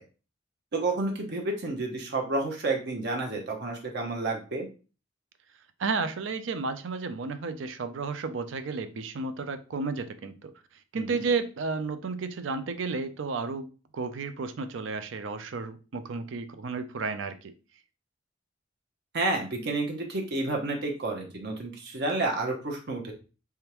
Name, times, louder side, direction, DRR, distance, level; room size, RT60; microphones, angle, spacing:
voice 1, 0.7-4.7 10.9-11.2 19.1-23.1, right 2 dB, 55° right, 1 dB, 0.8 m, -30 dB
voice 2, 5.8-10.5 10.9-13.7 13.9-17.5, right 4 dB, 75° right, 10 dB, 0.5 m, -32 dB
3.5 x 3.3 x 3.0 m, 0.35 s
head